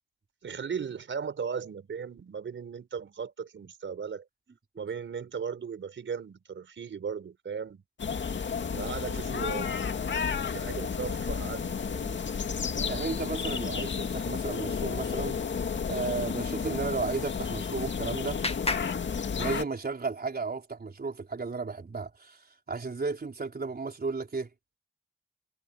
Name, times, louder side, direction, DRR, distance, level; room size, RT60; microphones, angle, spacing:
voice 1, 0.4-4.2 4.8-7.8 8.7-9.8 10.1-12.2, right 6 dB, 80° right, 5.4 m, -37 dB
sound 1, 8.0-19.6, left 6 dB, 70° left, 2.3 m, -32 dB
voice 2, 12.9-15.4 15.9-18.4 19.4-24.5, right 4 dB, 50° right, 4.6 m, -34 dB
Clapping, 17.3-19.9, left 3 dB, 30° left, 2.2 m, -37 dB
cardioid pair, 40°, 20 cm